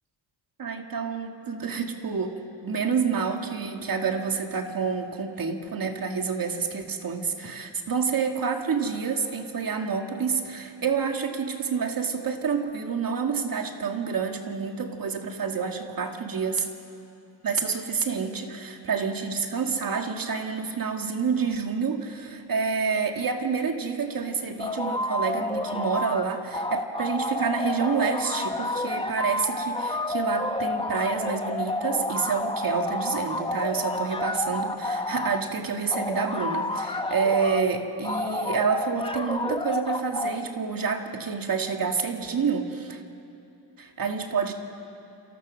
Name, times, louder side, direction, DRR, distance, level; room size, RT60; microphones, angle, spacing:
voice 1, 0.6-16.7 17.4-43.0 43.8-44.5, right 5 dB, 50° right, 4 dB, 2.2 m, -28 dB
sound 1, 24.6-26.2 26.5-35.4 35.9-37.6 38.0-40.4, left 2 dB, 10° left, 1.0 m, -30 dB
29.0 x 27.5 x 6.4 m, 2.7 s
cardioid pair, 120°, 45 cm